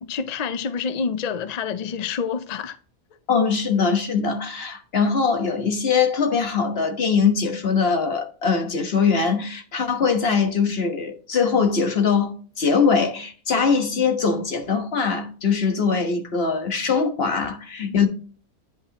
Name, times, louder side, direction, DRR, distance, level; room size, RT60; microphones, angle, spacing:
voice 1, 0.0-2.8, left 6 dB, 85° left, 0.3 m, -27 dB
voice 2, 3.3-18.1, left 5 dB, 45° left, 1.4 m, -22 dB
10.0 x 5.4 x 2.9 m
omnidirectional pair, 1.5 m